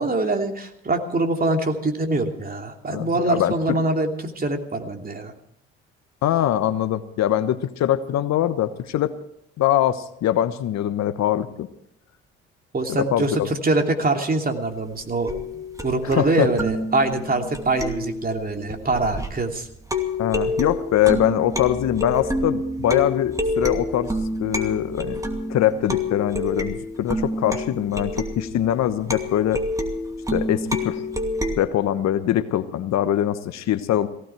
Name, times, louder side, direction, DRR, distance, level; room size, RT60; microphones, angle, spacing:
voice 1, 0.0-5.3 12.7-15.3 15.8-19.7, right 2 dB, 30° right, 3 dB, 2.9 m, -24 dB
voice 2, 2.9-3.5 6.2-9.1 9.6-11.7 12.9-13.5 16.0-16.5 20.2-24.1 24.4-25.2 25.5-29.6 30.3-31.0 31.6-34.1, left 11 dB, 60° left, 11 dB, 1.2 m, -23 dB
sound 1, 15.3-19.5 19.9-31.6, left 1 dB, 10° right, 2.6 m, -28 dB
17.0 x 16.0 x 4.6 m, 0.76 s
hypercardioid pair, 65°, 31 cm